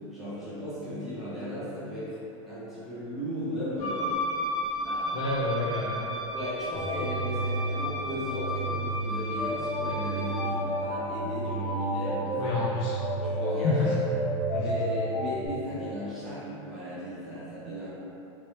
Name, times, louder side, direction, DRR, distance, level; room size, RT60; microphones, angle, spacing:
voice 1, 0.1-2.2 2.5-4.2 4.8-5.3 6.3-12.5 13.2-13.9 14.5-17.9, equal, ahead, -13 dB, 1.0 m, -36 dB
Wind instrument woodwind instrument, 3.8-10.6, left 1 dB, 35° left, 1.4 m, -34 dB
voice 2, 5.1-6.1 12.4-13.0 13.6-13.9 14.5-14.7, left 3 dB, 50° left, -5 dB, 0.6 m, -28 dB
sound 1, 6.7-15.5, right 1 dB, 80° left, 1.2 m, -31 dB
3.0 x 2.9 x 3.3 m, 3.0 s
supercardioid pair, 150°, 16 cm